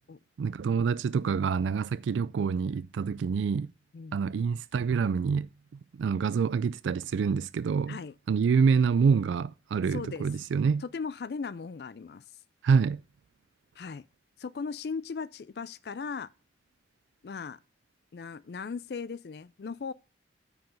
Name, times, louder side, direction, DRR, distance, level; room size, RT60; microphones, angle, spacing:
voice 1, 0.4-3.7 4.1-8.0 8.3-10.8 12.6-13.0, right 5 dB, 85° right, 0.3 m, -27 dB
voice 2, 9.9-10.3 10.8-12.2 13.8-14.0 14.4-16.3 17.2-17.6 18.1-19.9, left 5 dB, 55° left, 0.4 m, -37 dB
9.3 x 4.8 x 6.3 m
head